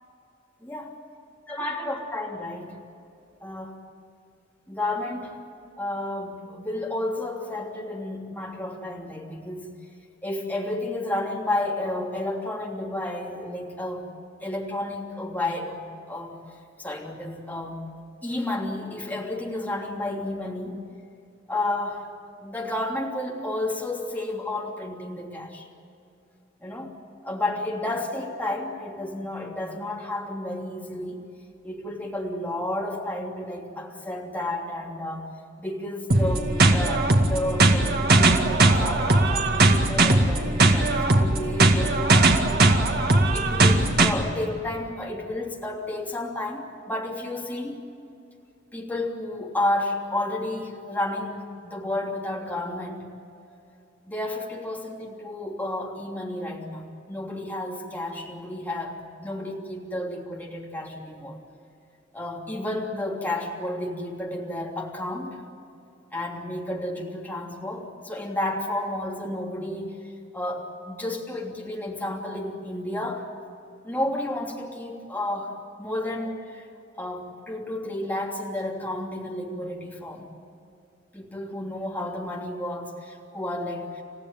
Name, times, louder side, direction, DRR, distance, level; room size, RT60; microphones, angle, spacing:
voice 1, 1.5-2.7 3.4-3.8 4.7-5.4 5.8-9.7 10.2-14.1 14.4-16.4 16.8-17.8 18.2-20.8 21.5-22.1 22.4-25.7 26.6-31.2 31.6-35.3 35.6-42.6 43.3-47.9 48.7-53.0 54.1-61.4 62.1-65.4 66.1-73.3 73.8-76.7 77.0-80.3 81.1-84.0, left 1 dB, 10° left, -2 dB, 3.1 m, -31 dB
sound 1, 36.1-44.1, right 2 dB, 55° right, 2.1 m, -19 dB
29.5 x 15.5 x 9.1 m, 2.7 s
head